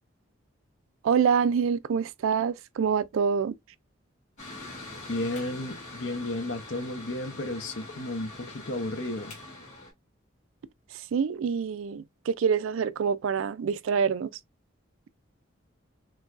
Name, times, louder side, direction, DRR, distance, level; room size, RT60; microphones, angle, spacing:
voice 1, 1.0-3.5 11.1-14.3, right 6 dB, 90° right, 0.4 m, -26 dB
Mechanical fan, 4.4-9.9, left 2 dB, 35° left, 2.4 m, -43 dB
voice 2, 5.1-9.4, left 1 dB, 75° left, 0.9 m, -33 dB
6.2 x 2.3 x 2.4 m
head